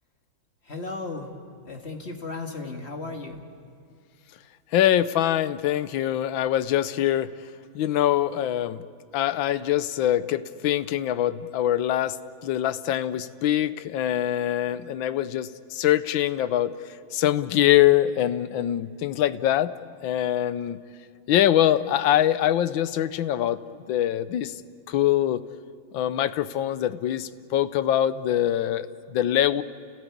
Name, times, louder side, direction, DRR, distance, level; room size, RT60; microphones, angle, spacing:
voice 1, 0.6-1.3 1.6-3.4, left 3 dB, 35° left, 3 dB, 1.9 m, -35 dB
voice 2, 4.7-7.3 7.7-8.8 9.1-12.2 12.4-16.7 17.1-19.7 20.0-20.8 21.3-23.6 23.9-24.5 24.9-25.4 25.9-29.6, left 12 dB, 75° left, 14 dB, 1.5 m, -23 dB
30.0 x 17.0 x 8.5 m, 2.4 s
omnidirectional pair, 2.2 m